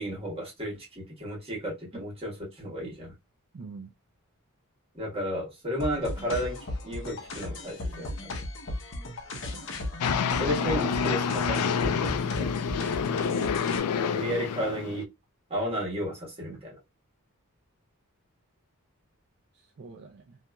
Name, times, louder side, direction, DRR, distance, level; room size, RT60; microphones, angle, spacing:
voice 1, 0.0-3.1 4.9-6.6 6.8-8.3 10.4-12.5 14.1-15.1 15.5-16.8, equal, 25° right, 1.4 m, -33 dB
voice 2, 3.5-3.9 9.3-10.3 19.5-20.4, right 4 dB, 50° right, 0.3 m, -46 dB
sound 1, 5.8-13.8, left 1 dB, 60° left, 0.7 m, -36 dB
sound 2, 10.0-15.0, left 6 dB, 80° left, 0.3 m, -28 dB
2.8 x 2.4 x 2.2 m
head